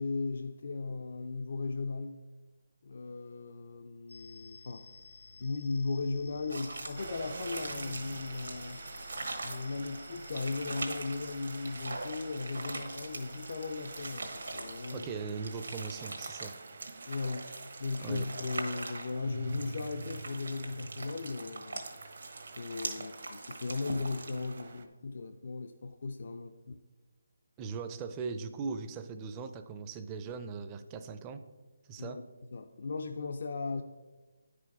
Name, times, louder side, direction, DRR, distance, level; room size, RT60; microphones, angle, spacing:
voice 1, 0.0-2.2 2.8-4.9 5.4-8.8 9.4-15.1 17.1-17.5 17.8-22.1 22.4-26.8 32.0-32.2 32.5-33.8, left 3 dB, 60° left, 6 dB, 0.4 m, -37 dB
sound 1, 4.1-15.2, left 3 dB, 85° left, 1.7 m, -53 dB
sound 2, 6.5-24.6, right 3 dB, 80° right, 1.3 m, -43 dB
sound 3, 7.0-24.9, right 4 dB, 55° right, 0.8 m, -48 dB
voice 2, 14.9-16.5 18.0-18.3 23.0-23.1 27.6-31.4 31.9-32.2, right 5 dB, 20° right, 9 dB, 0.4 m, -39 dB
9.8 x 5.0 x 4.7 m, 1.3 s
figure-of-eight pair, 160°, 0 cm